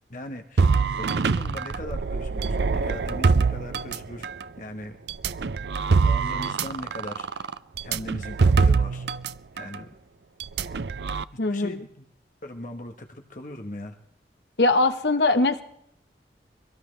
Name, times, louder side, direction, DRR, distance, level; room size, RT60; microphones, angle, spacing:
voice 1, 0.1-4.3 4.6-5.0 6.0-7.5 7.8-9.0 9.5-9.9 10.6-10.7 11.5-12.0 12.4-14.0, left 1 dB, 45° left, 4 dB, 1.3 m, -39 dB
sound 1, 0.6-4.4 5.1-9.3 9.6-9.8 10.4-11.2, right 4 dB, 75° right, 0.5 m, -24 dB
voice 2, 11.4-11.8 14.6-15.6, left 2 dB, 75° left, 8 dB, 1.1 m, -21 dB
23.0 x 17.5 x 3.3 m, 0.75 s
head